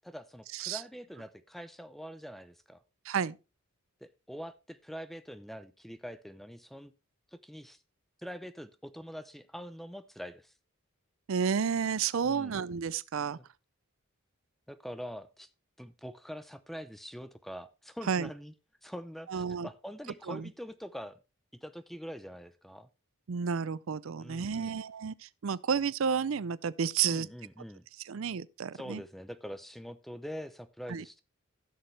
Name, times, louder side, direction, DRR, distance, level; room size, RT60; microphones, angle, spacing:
voice 1, 0.0-2.8 4.0-6.9 7.3-7.8 8.2-10.5 12.2-12.6 14.7-15.5 15.8-18.5 18.8-21.2 21.5-22.9 24.2-24.8 27.1-27.8 28.7-31.2, equal, ahead, 0.6 m, -44 dB
voice 2, 3.1-3.4 11.3-13.4 18.1-18.3 19.3-19.7 20.3-20.5 23.3-27.3 28.0-29.0 30.9-31.0, right 6 dB, 65° right, 0.4 m, -31 dB
15.5 x 6.5 x 3.2 m
head